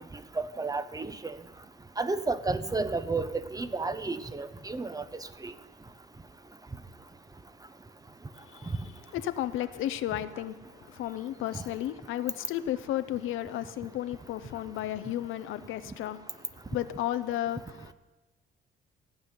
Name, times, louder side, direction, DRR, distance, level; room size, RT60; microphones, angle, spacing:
voice 1, 0.4-1.4 2.0-5.0 5.4-5.5, right 3 dB, 20° right, 0.8 m, -31 dB
voice 2, 8.4-17.9, left 13 dB, 85° left, 0.7 m, -34 dB
16.0 x 5.6 x 9.6 m
cardioid pair, 90°, 20 cm